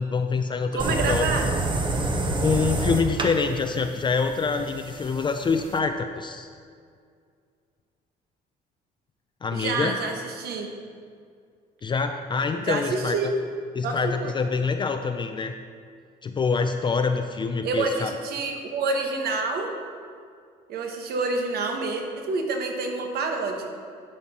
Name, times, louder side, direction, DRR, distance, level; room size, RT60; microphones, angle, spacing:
voice 1, 0.0-1.3 2.4-6.5 9.4-10.0 11.8-13.3 13.8-15.5 16.2-18.2, left 5 dB, 30° left, 6 dB, 0.4 m, -26 dB
voice 2, 0.7-1.5 9.5-10.7 12.7-13.3 13.8-14.3 17.6-19.7 20.7-23.7, right 3 dB, 70° right, 3 dB, 1.3 m, -28 dB
sound 1, 0.8-5.8, right 2 dB, 30° right, 0.9 m, -28 dB
10.5 x 5.8 x 4.3 m, 2.2 s
cardioid pair, 110°, 17 cm